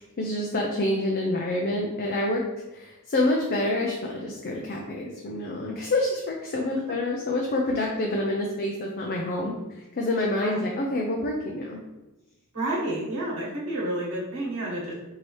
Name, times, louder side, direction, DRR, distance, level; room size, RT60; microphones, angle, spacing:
voice 1, 0.0-2.4 2.7-11.8, left 1 dB, 45° left, 0 dB, 0.5 m, -27 dB
voice 2, 12.5-14.9, right 1 dB, 85° right, -6 dB, 1.4 m, -30 dB
4.5 x 2.8 x 3.1 m, 1.0 s
head